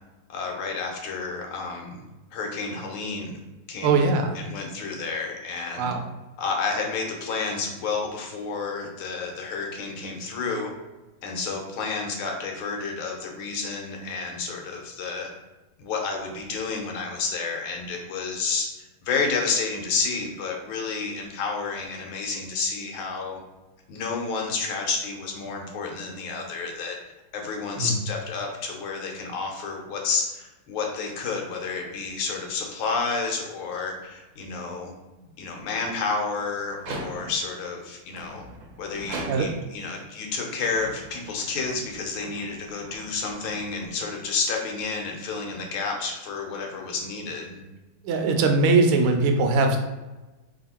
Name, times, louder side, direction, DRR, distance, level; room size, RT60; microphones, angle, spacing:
voice 1, 0.3-3.4 3.7-4.1 4.3-5.9 6.4-10.7 11.2-15.3 15.8-23.4 23.9-27.0 27.3-34.9 35.4-38.4 38.8-47.6, left 4 dB, 75° left, 1 dB, 1.6 m, -30 dB
voice 2, 3.8-4.4 5.8-6.0 27.8-28.0 37.1-37.2 39.2-39.5 48.0-49.8, right 3 dB, 85° right, 4 dB, 1.5 m, -21 dB
sound 1, 36.7-37.5 38.1-39.8 40.5-44.0, right 2 dB, 70° right, 1.4 m, -40 dB
3.5 x 2.8 x 4.1 m, 1.1 s
omnidirectional pair, 2.4 m